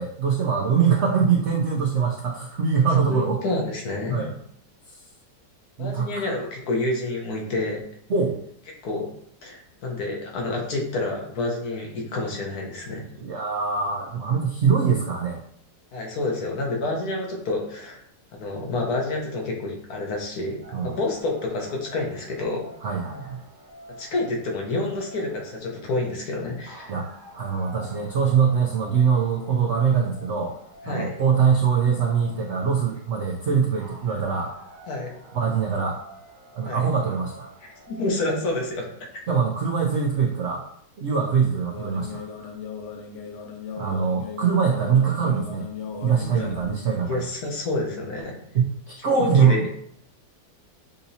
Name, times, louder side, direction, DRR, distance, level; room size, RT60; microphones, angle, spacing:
voice 1, 0.0-3.4 4.1-4.3 4.9-5.0 5.8-6.4 8.1-8.4 13.2-15.4 20.7-21.0 22.8-23.4 26.9-27.1 27.3-30.5 30.8-34.5 35.3-36.0 36.5-37.5 39.3-40.6 41.0-42.5 43.8-45.7 46.0-47.3 48.5-49.7, right 6 dB, 80° right, -1 dB, 0.6 m, -23 dB
voice 2, 3.1-4.2 5.8-7.8 8.8-9.1 9.4-13.0 15.9-18.0 18.3-22.7 24.0-26.9 30.8-31.2 34.9-35.1 36.6-36.8 37.9-38.9 39.1-39.2 46.2-46.5 47.1-48.4 49.1-49.6, left 2 dB, 60° left, -1 dB, 1.4 m, -28 dB
sound 1, 20.6-38.7, right 1 dB, 35° right, 0.8 m, -48 dB
sound 2, 41.7-46.7, left 6 dB, 80° left, 0.6 m, -37 dB
6.7 x 2.8 x 2.7 m, 0.68 s
omnidirectional pair, 1.9 m